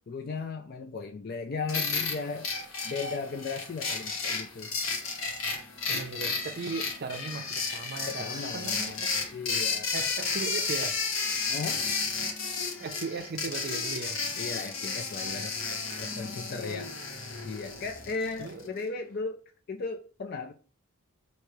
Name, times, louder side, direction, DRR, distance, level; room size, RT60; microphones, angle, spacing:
voice 1, 0.1-2.5 2.8-4.7 8.0-9.0 9.3-9.9 11.5-11.9 14.4-17.0 17.4-19.4 19.7-20.5, left 4 dB, 45° left, 0.4 m, -36 dB
sound 1, 1.7-18.7, left 4 dB, 75° left, 1.0 m, -33 dB
voice 2, 5.9-9.1 9.9-11.0 12.8-14.2 18.4-18.6, right 4 dB, 50° right, 0.5 m, -37 dB
3.1 x 2.8 x 4.5 m
head